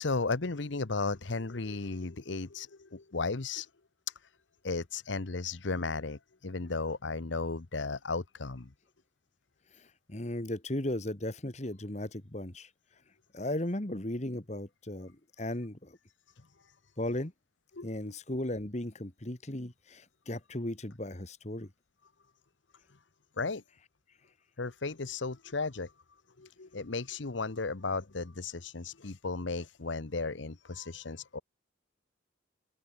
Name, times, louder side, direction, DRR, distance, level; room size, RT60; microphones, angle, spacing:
voice 1, 0.0-3.7 4.6-8.7 17.8-18.1 23.4-23.6 24.6-25.9 26.4-31.4, left 3 dB, 80° left, 1.1 m, -35 dB
voice 2, 9.8-12.7 13.3-16.0 17.0-17.3 17.8-21.7, left 1 dB, 35° left, 1.8 m, -36 dB
open air
head